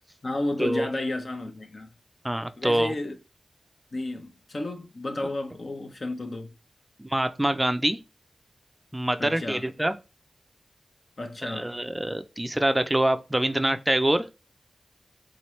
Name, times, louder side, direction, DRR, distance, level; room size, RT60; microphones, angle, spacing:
voice 1, 0.2-1.9 2.6-3.1 3.9-6.5 9.2-9.6 11.2-11.7, left 2 dB, 55° left, 0.7 m, -32 dB
voice 2, 2.2-2.9 7.0-8.0 8.9-9.9 11.4-14.3, right 1 dB, 20° right, 0.4 m, -25 dB
3.8 x 2.8 x 3.1 m
cardioid pair, 45°, 0 cm